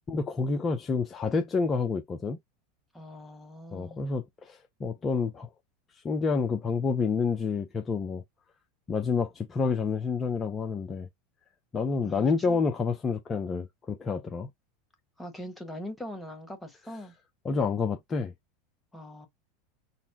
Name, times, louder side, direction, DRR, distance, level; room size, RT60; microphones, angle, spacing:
voice 1, 0.1-2.4 3.7-5.5 6.0-8.2 8.9-11.1 11.7-14.5 17.4-18.3, left 4 dB, 25° left, 0.7 m, -28 dB
voice 2, 2.9-4.1 12.0-12.6 15.2-17.1 18.9-19.3, equal, 5° left, 1.6 m, -42 dB
4.2 x 2.2 x 3.6 m
hypercardioid pair, 90°, 0 cm